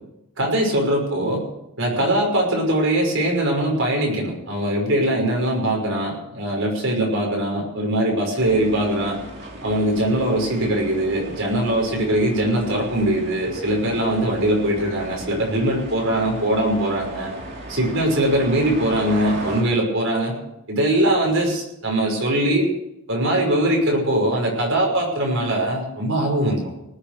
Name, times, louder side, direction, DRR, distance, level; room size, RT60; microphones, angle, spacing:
voice 1, 0.4-1.4 1.8-9.2 9.6-17.3 17.7-20.3 20.7-22.7 23.1-26.7, right 1 dB, 65° right, 0 dB, 5.8 m, -21 dB
sound 1, 8.4-19.6, right 1 dB, 45° right, 3.3 m, -36 dB
19.5 x 8.8 x 6.9 m, 0.83 s
head